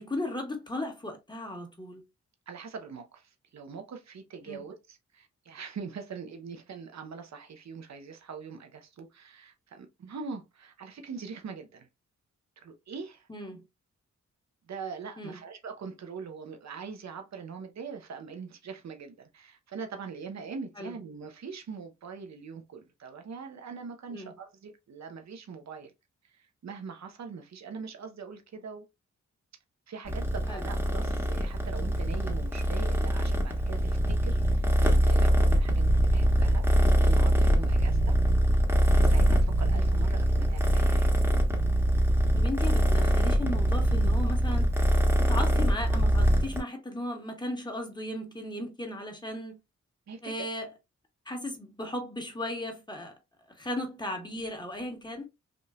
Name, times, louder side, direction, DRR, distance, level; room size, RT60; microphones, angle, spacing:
voice 1, 0.0-2.0 4.5-4.6 13.3-13.6 15.2-15.4 20.8-20.9 24.1-24.3 30.5-30.6 42.3-44.7 45.2-49.6 50.2-50.7 51.2-53.1 53.6-55.3, left 1 dB, 15° left, 1.4 m, -36 dB
voice 2, 2.5-11.9 12.6-13.3 14.7-25.9 26.2-28.9 29.9-36.7 37.0-38.2 39.0-41.1 50.1-50.5, right 5 dB, 65° right, 0.9 m, -42 dB
Purr, 30.0-46.6, right 1 dB, 5° right, 1.3 m, -24 dB
3.7 x 2.5 x 2.3 m
cardioid pair, 55°, 30 cm